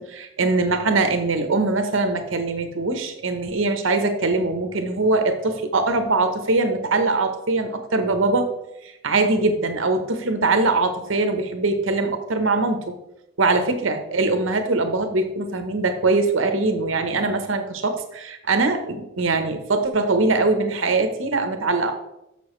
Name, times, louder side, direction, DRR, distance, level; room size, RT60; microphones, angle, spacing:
voice 1, 0.0-8.5 8.8-12.9 13.4-21.9, right 3 dB, 75° right, 6 dB, 0.9 m, -22 dB
7.0 x 6.7 x 3.2 m, 0.87 s
head